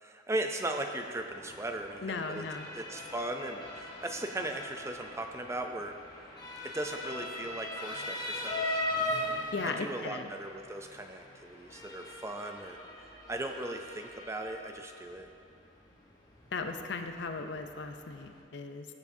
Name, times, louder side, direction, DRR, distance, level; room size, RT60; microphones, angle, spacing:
voice 1, 0.0-2.4 2.7-5.9 6.6-8.8 9.6-12.8 13.3-15.3, right 1 dB, 15° right, 5 dB, 0.4 m, -38 dB
Motor vehicle (road) / Siren, 1.0-18.4, left 1 dB, 20° left, 1.0 m, -40 dB
voice 2, 2.0-2.7 9.5-10.3 16.5-18.9, left 4 dB, 65° left, 6 dB, 0.6 m, -37 dB
15.0 x 7.2 x 2.7 m, 2.3 s
head